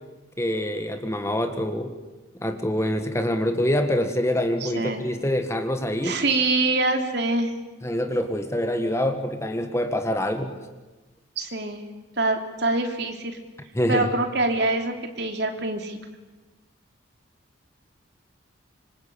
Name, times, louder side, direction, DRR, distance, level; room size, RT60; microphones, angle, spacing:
voice 1, 0.4-1.9 2.4-6.2 7.8-10.5 13.7-14.1, left 1 dB, 15° left, 6 dB, 1.7 m, -25 dB
voice 2, 4.6-5.0 6.0-7.5 11.4-11.8 12.2-13.4 13.9-16.0, right 2 dB, 55° right, 4 dB, 3.2 m, -25 dB
26.0 x 25.5 x 8.6 m, 1.2 s
head